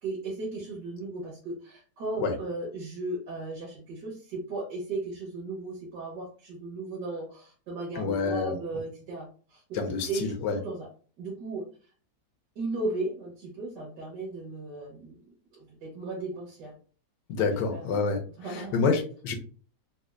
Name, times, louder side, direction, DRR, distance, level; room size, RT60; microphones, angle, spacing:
voice 1, 0.0-9.6 10.0-10.3 10.5-10.9 11.2-11.7 12.5-15.2 15.5-16.7 17.4-17.8 18.4-18.9, right 2 dB, 90° right, -3 dB, 1.8 m, -36 dB
voice 2, 8.0-8.5 9.7-10.6 17.3-18.2 18.5-19.3, left 5 dB, 85° left, 4 dB, 1.4 m, -27 dB
4.3 x 2.4 x 2.4 m, 0.40 s
omnidirectional pair, 1.8 m